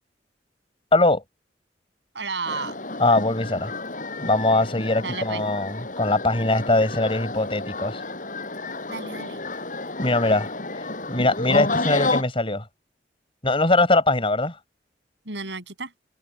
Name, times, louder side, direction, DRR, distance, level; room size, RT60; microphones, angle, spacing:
voice 1, 0.9-1.2 3.0-3.7 4.2-8.0 10.0-10.8 11.1-12.6 13.4-14.6, left 2 dB, 30° left, 5.6 m, -21 dB
voice 2, 2.1-2.8 5.0-5.4 8.9-9.4 15.3-15.9, right 4 dB, 75° right, 7.4 m, -32 dB
sound 1, 2.5-12.2, left 2 dB, 45° left, 7.3 m, -30 dB
head